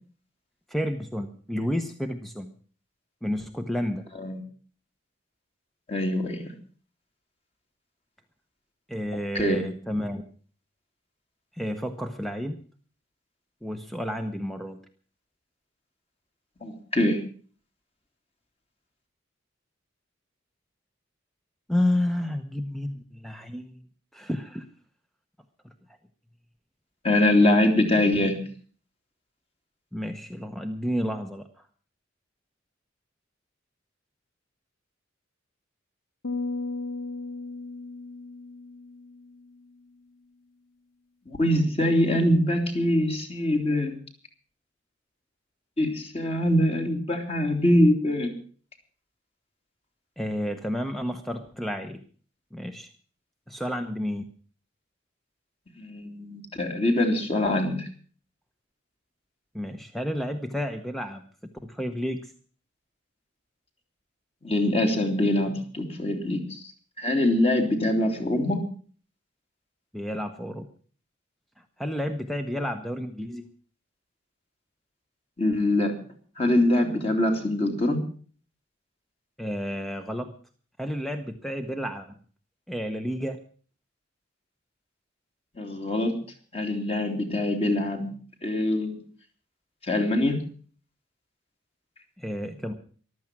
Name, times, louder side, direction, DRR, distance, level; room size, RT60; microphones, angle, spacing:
voice 1, 0.7-2.5 3.2-4.0 8.9-10.2 11.5-12.6 13.6-14.8 21.7-23.8 24.1-24.7 29.9-31.5 50.2-52.0 52.5-52.9 53.5-54.2 59.5-61.2 61.6-62.3 69.9-70.7 71.8-73.4 79.4-80.3 80.8-82.1 82.7-83.4 92.2-92.7, equal, ahead, 7 dB, 0.9 m, -30 dB
voice 2, 5.9-6.5 9.1-9.6 16.6-17.2 27.0-28.4 41.3-44.0 45.8-48.3 55.8-57.9 64.4-66.6 67.0-68.6 75.4-76.0 76.4-78.0 85.5-86.2 86.5-88.1 88.4-89.0 89.9-90.4, left 1 dB, 30° left, 3 dB, 2.8 m, -24 dB
sound 1, 36.2-39.7, left 3 dB, 75° left, 1.6 m, -35 dB
14.5 x 12.0 x 6.0 m, 0.43 s
head